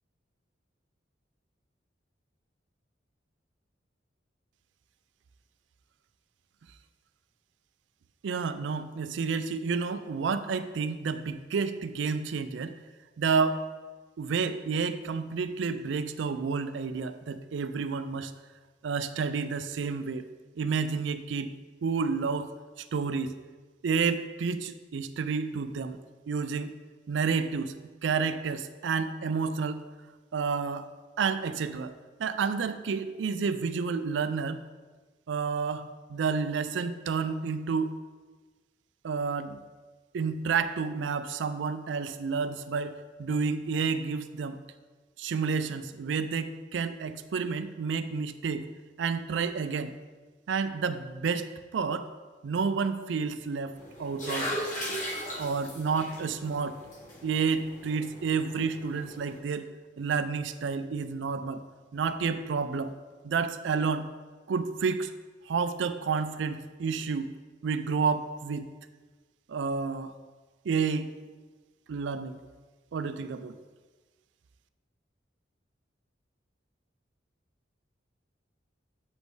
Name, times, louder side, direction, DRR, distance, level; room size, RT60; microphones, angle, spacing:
voice 1, 8.2-12.8 13.2-13.6 14.2-18.3 18.8-20.2 20.6-21.5 21.8-22.5 22.8-23.4 23.8-26.0 26.3-26.7 27.1-27.8 28.0-29.8 30.3-30.9 31.2-31.9 32.2-34.6 35.3-35.8 36.1-37.9 39.0-39.6 40.1-44.6 45.2-48.6 49.0-49.9 50.5-51.5 51.7-52.1 52.4-54.5 55.4-56.8 57.2-59.7 60.0-61.6 61.9-62.9 63.2-64.1 64.5-65.1 65.5-67.3 67.6-68.7 69.5-70.1 70.6-71.1 71.9-72.4 72.9-73.6, right 5 dB, 75° right, 11 dB, 0.4 m, -30 dB
sound 1, 53.7-59.4, equal, 45° left, 1.3 m, -38 dB
7.4 x 5.2 x 3.2 m, 1.3 s
head